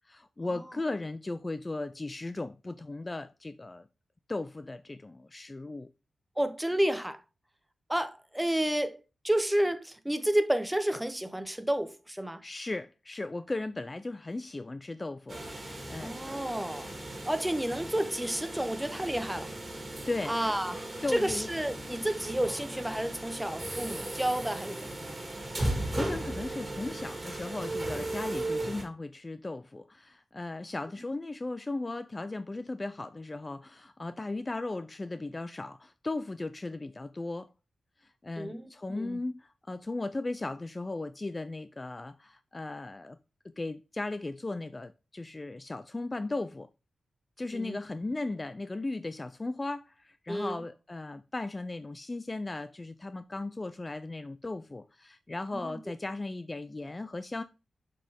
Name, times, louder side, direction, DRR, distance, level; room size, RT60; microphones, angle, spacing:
voice 1, 0.1-3.9 4.3-5.9 12.4-16.1 20.1-20.4 21.0-21.5 25.6-37.5 38.0-43.2 43.4-46.7 47.4-57.4, left 2 dB, 25° left, 0.4 m, -37 dB
voice 2, 6.4-7.2 7.9-9.0 9.2-12.4 16.0-16.9 17.2-19.5 20.3-20.8 21.1-24.9 38.4-38.6 38.9-39.2 47.5-47.8 50.3-50.6 55.6-55.8, right 1 dB, 5° right, 0.8 m, -30 dB
sound 1, 15.3-28.8, right 1 dB, 25° right, 2.1 m, -37 dB
7.3 x 4.5 x 3.5 m
wide cardioid pair, 85°, 0 cm